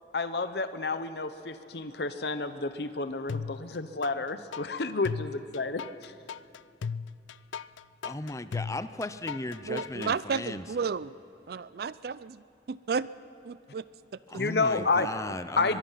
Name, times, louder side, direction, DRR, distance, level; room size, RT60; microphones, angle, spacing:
voice 1, 0.1-6.1 14.3-15.1 15.6-15.8, left 3 dB, 60° left, 11 dB, 0.8 m, -30 dB
sound 1, 3.3-4.1 4.5-10.1, left 6 dB, 85° left, 0.4 m, -37 dB
voice 2, 8.0-10.6 14.3-15.8, left 2 dB, 15° left, 12 dB, 0.6 m, -36 dB
voice 3, 9.6-11.1 11.5-13.1 13.4-13.8 14.3-14.4, right 5 dB, 55° right, 17 dB, 0.4 m, -33 dB
23.0 x 22.0 x 5.7 m, 2.9 s
head